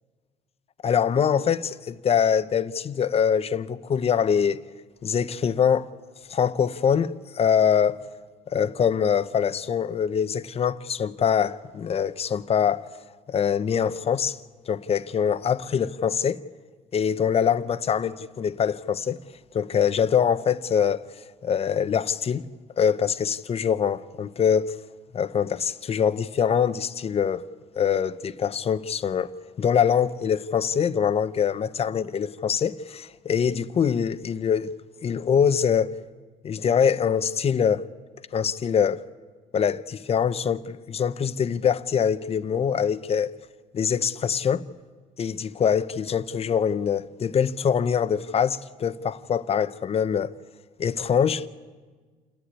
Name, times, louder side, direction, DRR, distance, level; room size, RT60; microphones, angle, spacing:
voice 1, 0.8-4.6 5.0-5.9 6.3-8.0 8.5-12.9 13.3-14.4 14.7-16.4 16.9-19.2 19.5-21.1 21.4-22.4 22.8-24.8 25.1-27.4 27.8-29.3 29.6-34.7 35.0-35.9 36.4-37.8 38.3-39.0 39.5-43.4 43.7-44.6 45.2-50.3 50.8-51.5, left 7 dB, 35° left, 0.7 m, -24 dB
28.5 x 10.0 x 9.7 m
cardioid pair, 110°, 17 cm